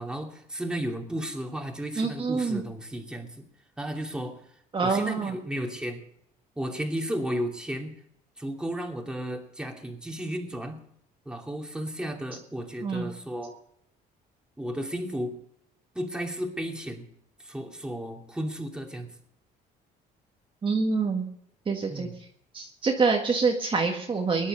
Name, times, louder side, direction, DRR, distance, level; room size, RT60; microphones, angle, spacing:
voice 1, 0.0-3.5 3.8-4.5 4.8-6.0 6.6-8.0 8.4-10.8 11.3-13.6 14.6-15.4 15.9-17.1 17.4-19.1 21.9-22.1, equal, 5° right, 1 dB, 2.7 m, -34 dB
voice 2, 2.0-2.6 4.7-5.3 12.8-13.1 20.6-21.3 21.7-22.1 22.5-24.5, right 4 dB, 30° right, 1 dB, 1.8 m, -26 dB
19.0 x 10.5 x 6.6 m, 0.72 s
cardioid pair, 110°, 17 cm